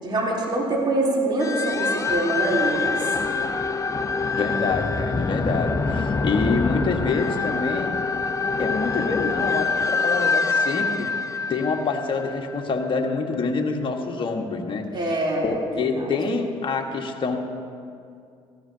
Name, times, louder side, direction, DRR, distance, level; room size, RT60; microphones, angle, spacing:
voice 1, 0.0-3.0 14.9-15.5 15.8-16.1, right 2 dB, 40° right, -3 dB, 3.4 m, -24 dB
sound 1, 1.4-12.6, left 4 dB, 25° left, 0.8 m, -25 dB
voice 2, 4.4-7.9 8.6-11.1 11.5-14.8 15.4-17.4, left 4 dB, 40° left, 2 dB, 1.6 m, -26 dB
17.5 x 14.5 x 2.8 m, 2.3 s
hypercardioid pair, 55°, 13 cm